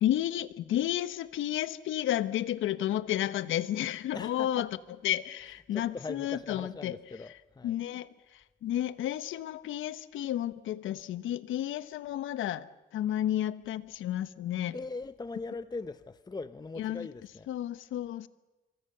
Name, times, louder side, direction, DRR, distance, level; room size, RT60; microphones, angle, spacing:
voice 1, 0.0-4.7 5.0-7.0 7.6-14.8 16.8-17.1 17.5-18.3, left 12 dB, 80° left, 15 dB, 1.1 m, -32 dB
voice 2, 4.1-4.6 5.7-7.8 14.7-17.5, left 3 dB, 20° left, 13 dB, 0.8 m, -40 dB
26.0 x 23.5 x 6.8 m, 1.1 s
cardioid pair, 90°, 20 cm